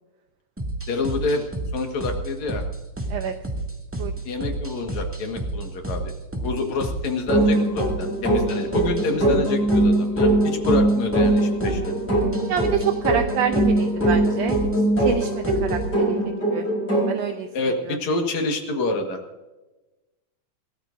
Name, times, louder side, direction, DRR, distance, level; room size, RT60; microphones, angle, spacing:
sound 1, 0.6-15.9, right 2 dB, 5° right, 1.4 m, -31 dB
voice 1, 0.9-1.4 1.7-2.6 4.3-11.9 17.5-19.2, left 3 dB, 70° left, 4 dB, 3.0 m, -27 dB
sound 2, 7.3-17.2, right 1 dB, 25° left, 4.5 m, -22 dB
voice 2, 12.5-14.6 15.0-16.2 16.5-16.7 17.1-17.5 17.9-18.0, right 9 dB, 70° right, 5 dB, 1.8 m, -27 dB
26.0 x 14.0 x 2.6 m, 1.1 s
omnidirectional pair, 3.3 m